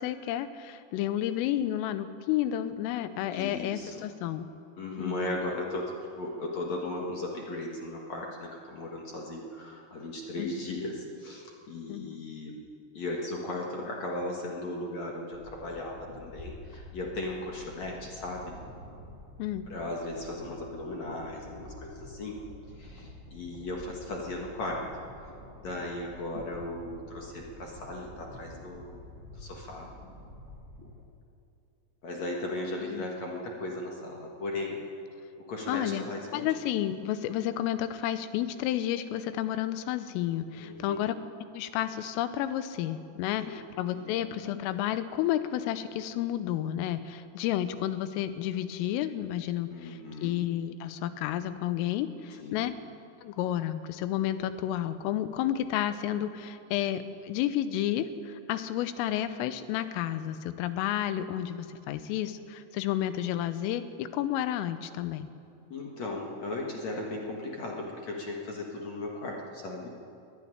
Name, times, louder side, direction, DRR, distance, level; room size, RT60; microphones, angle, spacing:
voice 1, 0.0-4.5 5.0-5.3 10.4-10.5 11.9-12.2 19.4-19.7 32.8-33.0 35.7-36.0 36.3-41.1 41.5-52.7 53.2-65.3, left 12 dB, 90° left, 11 dB, 3.5 m, -31 dB
voice 2, 3.3-4.0 4.8-12.6 12.9-18.5 19.7-22.4 22.8-24.9 25.6-29.0 29.3-29.9 32.0-34.8 35.4-36.6 40.5-41.0 43.4-43.6 43.9-44.1 49.7-50.3 52.4-52.7 65.7-69.9, left 2 dB, 55° left, -1 dB, 2.0 m, -37 dB
sound 1, 15.3-31.0, left 1 dB, 55° right, 0.6 m, -48 dB
23.0 x 11.5 x 9.9 m, 2.6 s
omnidirectional pair, 5.7 m